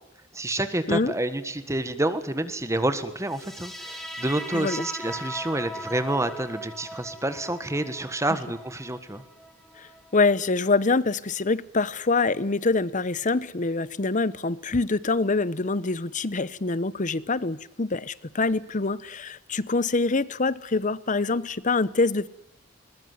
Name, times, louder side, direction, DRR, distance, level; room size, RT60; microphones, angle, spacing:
voice 1, 0.3-9.2, right 1 dB, 15° right, 1.5 m, -28 dB
sound 1, 3.2-10.3, equal, ahead, 3.0 m, -39 dB
voice 2, 9.8-22.3, left 3 dB, 40° left, 0.9 m, -25 dB
21.5 x 21.0 x 9.6 m
head